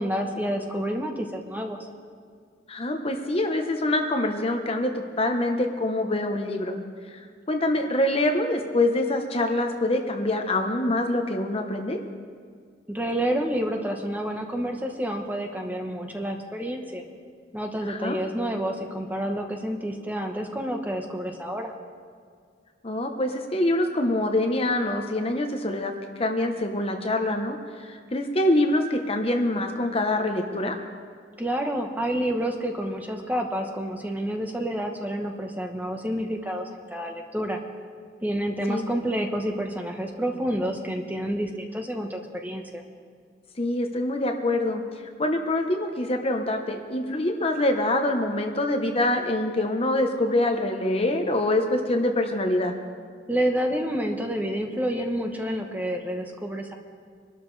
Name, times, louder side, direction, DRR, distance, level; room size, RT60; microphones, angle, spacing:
voice 1, 0.0-1.8 12.9-17.0 17.5-21.7 31.4-37.6 38.2-42.8 53.3-56.7, equal, 10° right, 3 dB, 1.1 m, -29 dB
voice 2, 2.7-6.8 7.1-7.2 7.5-12.0 17.8-18.2 22.8-25.9 26.2-30.8 38.7-38.9 43.6-44.8 45.2-52.7, left 1 dB, 35° left, 4 dB, 0.9 m, -25 dB
23.5 x 12.0 x 3.3 m, 2.1 s
head